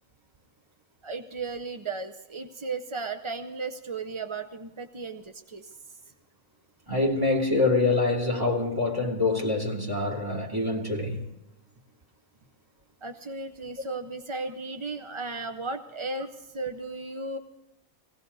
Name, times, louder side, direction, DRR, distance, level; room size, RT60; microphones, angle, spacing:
voice 1, 1.0-6.0 13.0-17.4, right 3 dB, 40° right, 0.4 m, -35 dB
voice 2, 6.9-11.2, left 3 dB, 15° right, 2.8 m, -25 dB
20.0 x 17.0 x 4.0 m
omnidirectional pair, 1.5 m